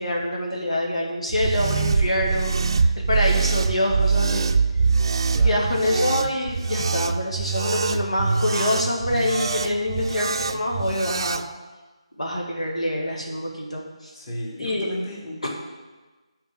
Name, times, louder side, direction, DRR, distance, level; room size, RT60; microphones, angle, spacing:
voice 1, 0.0-4.4 5.4-11.4 12.2-14.1 14.6-14.9, left 1 dB, 75° left, -1 dB, 1.9 m, -26 dB
sound 1, 1.3-11.4, right 4 dB, 45° right, 0.5 m, -24 dB
voice 2, 5.3-5.8 14.1-15.5, equal, 30° left, -4 dB, 2.6 m, -34 dB
10.5 x 4.6 x 7.4 m, 1.3 s
figure-of-eight pair, 155°, 3 cm